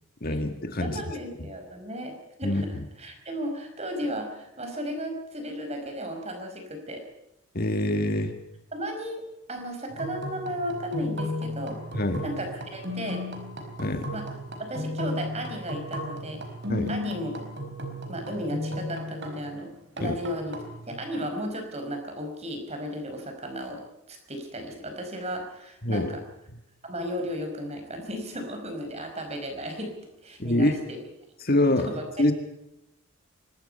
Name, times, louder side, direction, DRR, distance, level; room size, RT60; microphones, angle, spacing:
voice 1, 0.2-1.0 2.4-2.8 7.5-8.3 11.9-12.3 13.8-14.1 16.7-16.9 20.0-20.2 25.8-26.1 30.4-30.8 31.4-31.9 32.2-32.3, left 1 dB, 40° left, 6 dB, 1.9 m, -25 dB
voice 2, 0.8-2.1 2.4-7.0 8.7-9.2 9.5-11.8 12.2-13.2 14.1-14.3 14.6-16.4 16.9-17.3 18.1-20.6 20.9-23.8 24.1-26.2 26.8-29.9 30.2-31.0 31.7-32.0, equal, 30° right, 4 dB, 5.1 m, -34 dB
sound 1, 9.9-19.6 20.0-21.3, left 1 dB, 50° right, 4.8 m, -35 dB
25.0 x 21.0 x 5.5 m, 0.86 s
head